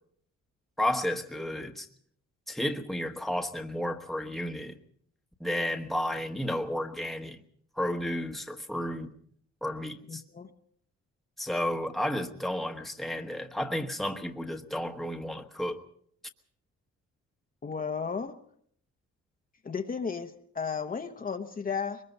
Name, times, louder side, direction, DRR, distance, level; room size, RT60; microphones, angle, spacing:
voice 1, 0.8-1.9 2.5-4.8 5.4-7.4 7.8-9.1 9.6-10.2 11.4-15.8, left 1 dB, ahead, 5 dB, 1.2 m, -32 dB
voice 2, 10.1-10.5 17.6-18.4 19.6-22.0, left 6 dB, 30° left, 5 dB, 1.0 m, -34 dB
23.5 x 21.0 x 5.4 m, 0.65 s
wide cardioid pair, 155°, 29 cm